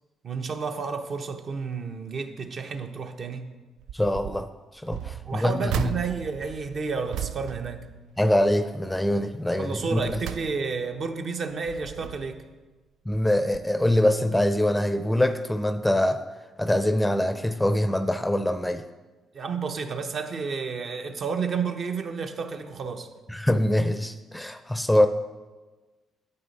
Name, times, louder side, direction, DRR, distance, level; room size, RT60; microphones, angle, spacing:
voice 1, 0.2-3.5 5.2-7.9 9.6-12.4 19.3-23.1, right 5 dB, 50° right, 6 dB, 0.8 m, -31 dB
sound 1, 3.8-4.4 4.9-8.5 8.9-9.2 9.7-11.0 11.5-12.5 13.1-13.3 13.5-13.6, right 10 dB, 80° right, 0.3 m, -36 dB
voice 2, 3.9-4.5 4.8-5.9 8.2-10.0 13.1-16.2 16.6-18.8 23.3-25.1, left 1 dB, 5° left, 10 dB, 0.5 m, -24 dB
9.6 x 8.1 x 4.1 m, 1.3 s
cardioid pair, 90°, 0 cm